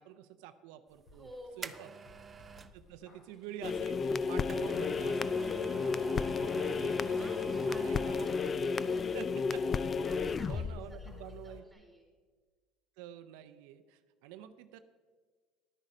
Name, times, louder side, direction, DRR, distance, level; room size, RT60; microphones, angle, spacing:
voice 1, 0.0-1.3 1.6-1.9 2.7-8.8 9.1-9.6 10.5-11.6 13.0-14.8, right 11 dB, 85° right, 10 dB, 0.5 m, -49 dB
sound 1, 1.0-2.8 4.0-8.6 8.9-9.0, right 5 dB, 25° right, 0.5 m, -47 dB
sound 2, 1.1-4.1 4.4-6.1 6.4-9.4 9.7-11.4 11.7-11.8, left 1 dB, 55° left, 3.6 m, -60 dB
voice 2, 1.1-2.1 6.6-9.5 10.0-12.1, equal, 5° left, 1 dB, 3.7 m, -54 dB
sound 3, 3.6-11.6, left 5 dB, 30° left, 0.4 m, -32 dB
11.0 x 9.6 x 5.0 m, 1.5 s
supercardioid pair, 115°, 0 cm